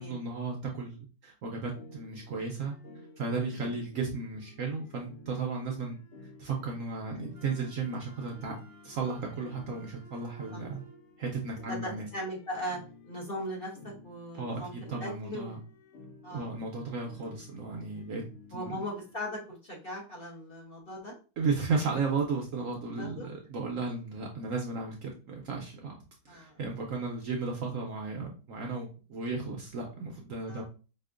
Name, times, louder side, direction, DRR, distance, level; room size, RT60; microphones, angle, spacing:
voice 1, 0.0-2.7 3.2-6.0 6.4-8.6 8.8-10.8 11.2-12.1 14.3-15.6 16.3-18.2 18.5-18.8 21.4-26.0 26.2-30.6, right 4 dB, 65° right, 1 dB, 0.9 m, -34 dB
sound 1, 1.7-19.2, left 3 dB, 65° left, 0.7 m, -54 dB
Wind instrument woodwind instrument, 7.3-11.0, right 3 dB, 85° right, 0.4 m, -56 dB
voice 2, 11.7-15.5 16.2-16.5 18.5-21.1 23.0-23.3 26.3-26.6 30.5-30.6, equal, 40° left, -3 dB, 1.1 m, -39 dB
5.0 x 2.4 x 2.4 m, 0.35 s
omnidirectional pair, 1.8 m